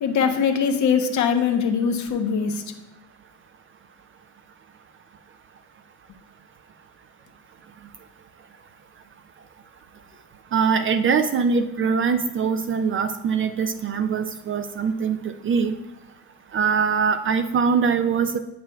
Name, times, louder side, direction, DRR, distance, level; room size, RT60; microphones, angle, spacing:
voice 1, 0.0-2.6, left 6 dB, 75° left, 5 dB, 0.9 m, -22 dB
voice 2, 10.5-15.7 16.5-18.4, right 6 dB, 45° right, 8 dB, 0.4 m, -22 dB
7.6 x 6.7 x 2.2 m, 0.92 s
cardioid pair, 90°, 30 cm